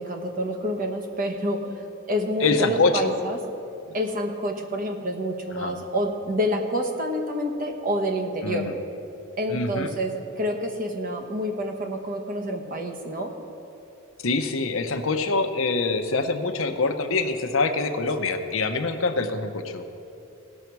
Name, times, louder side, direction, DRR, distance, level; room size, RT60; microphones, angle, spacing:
voice 1, 0.0-1.8 2.1-3.4 3.9-8.7 9.4-13.3, equal, 40° right, 3 dB, 1.1 m, -28 dB
voice 2, 2.4-3.1 5.6-5.7 8.4-8.7 9.5-9.9 14.2-19.8, left 3 dB, 65° left, 7 dB, 0.7 m, -25 dB
17.5 x 6.3 x 4.6 m, 2.8 s
head